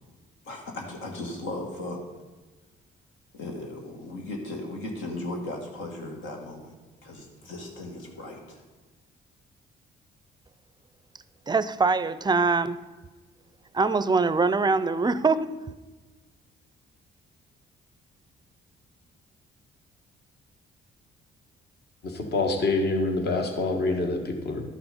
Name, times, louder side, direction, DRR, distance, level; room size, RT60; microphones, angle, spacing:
voice 1, 0.5-2.0 3.3-6.7 7.0-8.6, left 2 dB, 85° left, 1 dB, 2.0 m, -36 dB
voice 2, 11.5-12.8 13.7-15.6, right 4 dB, 20° right, 14 dB, 0.4 m, -23 dB
voice 3, 22.0-24.6, left 2 dB, 55° left, 4 dB, 1.4 m, -26 dB
12.0 x 6.0 x 5.2 m, 1.3 s
cardioid pair, 90°, 20 cm